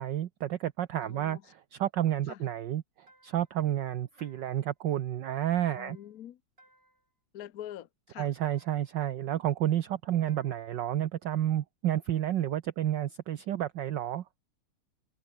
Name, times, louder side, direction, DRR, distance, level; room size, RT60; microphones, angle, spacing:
voice 1, 0.0-6.0 8.2-14.2, right 12 dB, 65° right, 1.4 m, -30 dB
voice 2, 1.0-1.4 2.3-2.4 5.7-6.4 7.3-8.3, left 11 dB, 60° left, 1.0 m, -45 dB
sound 1, 3.1-3.6 4.2-4.7 5.7-6.2 6.6-7.1 8.4-9.0 10.3-10.8, right 1 dB, 25° right, 8.4 m, -63 dB
omnidirectional pair, 2.4 m